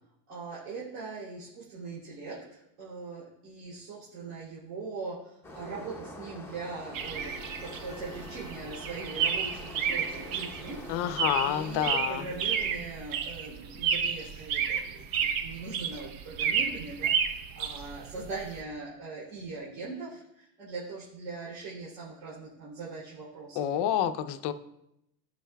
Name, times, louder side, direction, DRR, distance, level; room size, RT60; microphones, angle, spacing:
voice 1, 0.3-7.3 7.6-10.8 11.3-23.7, right 4 dB, 70° right, -7 dB, 3.1 m, -41 dB
sound 1, 5.4-11.9, left 1 dB, 5° left, 0.8 m, -46 dB
sound 2, 6.9-18.6, right 7 dB, 45° right, 0.7 m, -31 dB
sound 3, 7.0-12.8, right 1 dB, 10° right, 2.4 m, -48 dB
voice 2, 10.9-12.2 23.6-24.5, left 10 dB, 55° left, 10 dB, 0.6 m, -28 dB
14.0 x 5.5 x 2.3 m, 0.81 s
supercardioid pair, 125°, 49 cm